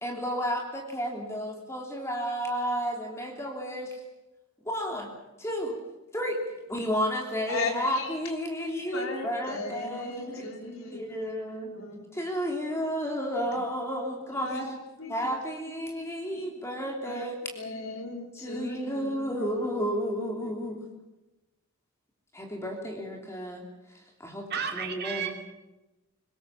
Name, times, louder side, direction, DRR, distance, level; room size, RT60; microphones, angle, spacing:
voice 1, 0.0-4.0 4.6-5.1 5.4-5.8 6.1-6.4 6.7-11.7 12.1-14.8 15.1-17.4 18.3-20.9 22.3-23.7 24.2-25.3, equal, 10° left, 1 dB, 3.2 m, -32 dB
voice 2, 7.5-8.2 8.6-11.2 11.7-12.1 13.5-13.6 14.4-14.7 15.0-15.1 16.3-16.4 17.1-17.3 17.5-19.6, left 3 dB, 75° left, 2 dB, 3.2 m, -37 dB
voice 3, 24.2-25.3, right 7 dB, 45° right, 4 dB, 2.6 m, -33 dB
24.5 x 20.5 x 7.1 m, 1.0 s
head